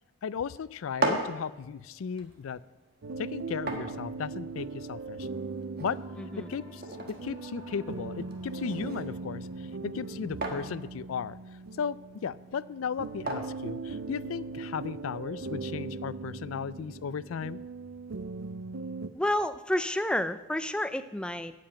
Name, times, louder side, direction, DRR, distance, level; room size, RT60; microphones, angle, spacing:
voice 1, 0.2-2.6 3.2-5.3 5.8-6.0 6.5-6.8 7.1-11.4 11.8-12.0 12.2-17.6, left 6 dB, 85° left, 19 dB, 0.4 m, -35 dB
sound 1, 0.7-14.6, right 2 dB, 45° right, 1.4 m, -39 dB
sound 2, 3.0-19.1, right 4 dB, 70° right, 0.5 m, -39 dB
Singing / Musical instrument, 5.8-15.4, right 1 dB, 15° right, 2.3 m, -57 dB
voice 2, 6.2-6.5 19.1-21.6, left 1 dB, 5° left, 11 dB, 0.4 m, -30 dB
8.7 x 7.7 x 8.9 m, 1.1 s
head